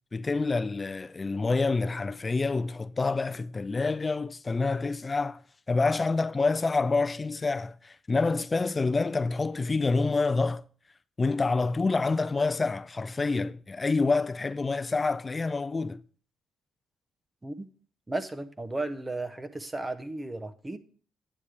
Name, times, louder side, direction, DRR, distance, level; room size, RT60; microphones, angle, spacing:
voice 1, 0.1-10.6 11.2-16.0, left 3 dB, 25° left, 0.4 m, -27 dB
voice 2, 18.1-20.8, right 2 dB, 15° right, 0.8 m, -34 dB
9.7 x 7.3 x 3.3 m
cardioid pair, 90°, 0 cm